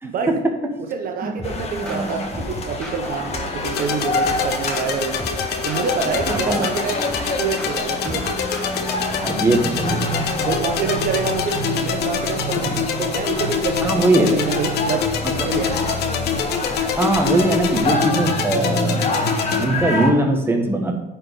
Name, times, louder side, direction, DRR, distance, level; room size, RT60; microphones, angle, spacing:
voice 1, 0.9-5.2 5.6-7.0 7.4-8.6 10.5-15.1 15.4-15.8 16.7-16.9, right 5 dB, 60° right, 5 dB, 0.9 m, -27 dB
sound 1, 1.4-20.1, left 2 dB, 40° left, 1.4 m, -27 dB
sound 2, 1.4-9.0, equal, 5° left, 1.7 m, -35 dB
voice 2, 1.7-2.3 6.3-6.7 9.2-10.3 13.8-14.4 15.2-15.5 17.0-19.0 19.5-21.0, right 2 dB, 15° right, 2 dB, 1.4 m, -21 dB
sound 3, 3.6-19.6, left 7 dB, 75° left, 1.1 m, -26 dB
9.3 x 4.6 x 5.2 m, 1.0 s
cardioid pair, 110°, 17 cm